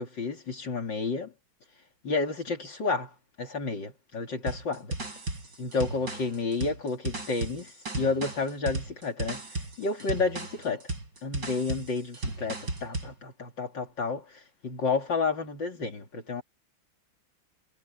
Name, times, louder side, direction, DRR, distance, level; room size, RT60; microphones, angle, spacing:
voice 1, 0.0-1.3 2.0-4.9 5.6-10.9 11.2-16.4, left 4 dB, 60° left, 3.3 m, -31 dB
sound 1, 4.5-13.1, right 2 dB, 55° right, 6.5 m, -35 dB
omnidirectional pair, 2.2 m